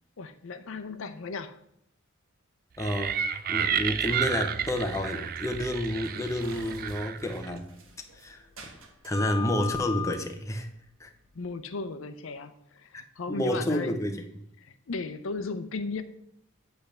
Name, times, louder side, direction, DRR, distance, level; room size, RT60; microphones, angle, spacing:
voice 1, 0.2-1.6 11.3-14.0 14.6-16.0, left 3 dB, 75° left, 0.5 m, -36 dB
voice 2, 2.8-3.2 3.5-7.7 8.1-8.4 9.0-10.7 11.0-11.1 13.3-14.2, left 1 dB, 15° left, 0.6 m, -30 dB
sound 1, 2.8-7.6, right 8 dB, 45° right, 0.4 m, -31 dB
sound 2, 4.1-11.5, left 7 dB, 85° right, 1.4 m, -41 dB
8.0 x 3.4 x 6.5 m
head